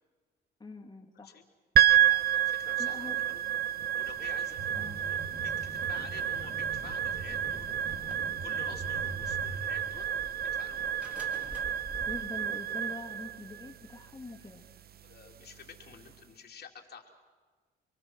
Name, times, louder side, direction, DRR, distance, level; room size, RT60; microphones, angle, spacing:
voice 1, 0.6-1.4 2.8-3.2 4.7-5.0 5.6-5.7 12.1-14.6, left 3 dB, 20° left, 0 dB, 2.5 m, -44 dB
sound 1, 1.8-16.1, right 11 dB, 50° right, 0.9 m, -30 dB
voice 2, 2.1-3.6 3.9-7.7 8.4-10.1 10.4-11.2 15.0-17.1, left 6 dB, 55° left, 1 dB, 2.9 m, -50 dB
sound 2, 4.0-12.2, equal, 5° right, 3.0 m, -50 dB
sound 3, 4.6-9.6, right 2 dB, 85° right, 4.3 m, -43 dB
29.5 x 22.0 x 6.2 m, 1.5 s
cardioid pair, 90°, 20 cm